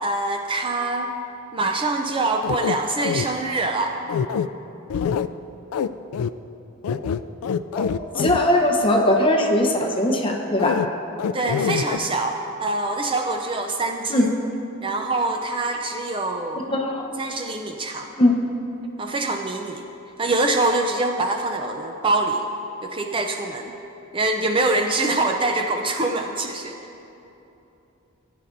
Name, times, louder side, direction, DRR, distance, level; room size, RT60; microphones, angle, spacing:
voice 1, 0.0-1.1 1.5-3.9 11.3-14.3 14.8-16.7 17.2-18.1 19.0-19.9 20.2-22.5 22.8-23.7 24.1-26.8, right 2 dB, 25° right, 3 dB, 0.4 m, -24 dB
sound 1, 2.4-3.2 4.1-4.5 4.9-5.3 5.7-5.9 6.1-6.3 6.8-8.4 10.6-10.9 11.2-12.0, left 7 dB, 85° left, 0.3 m, -24 dB
voice 2, 8.2-10.8 14.1-14.3 16.7-17.1 18.2-18.4, left 1 dB, 25° left, 1 dB, 0.9 m, -20 dB
16.5 x 9.9 x 2.6 m, 2.9 s
head